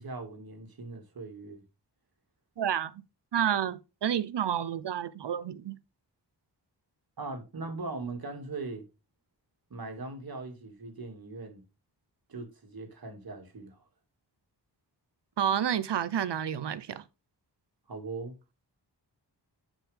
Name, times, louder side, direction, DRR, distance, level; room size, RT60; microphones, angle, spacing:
voice 1, 0.0-1.6 7.2-8.9 9.7-11.6 12.3-13.8 17.9-18.4, right 3 dB, 55° right, 2.6 m, -40 dB
voice 2, 2.6-3.0 3.3-5.8 15.4-17.0, right 9 dB, 75° right, 0.9 m, -30 dB
10.0 x 5.5 x 3.5 m
wide cardioid pair, 140°, 42 cm